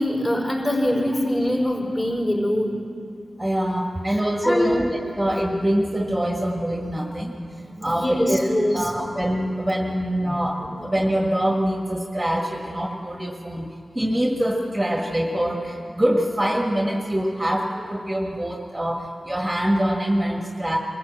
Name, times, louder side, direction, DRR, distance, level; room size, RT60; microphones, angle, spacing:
voice 1, 0.0-2.8 4.4-4.7 7.7-8.8, left 1 dB, 25° left, 0 dB, 5.0 m, -23 dB
voice 2, 3.4-13.7 13.9-20.8, equal, 15° right, 1 dB, 1.7 m, -24 dB
23.0 x 15.0 x 7.6 m, 2.4 s
cardioid pair, 65°, 0 cm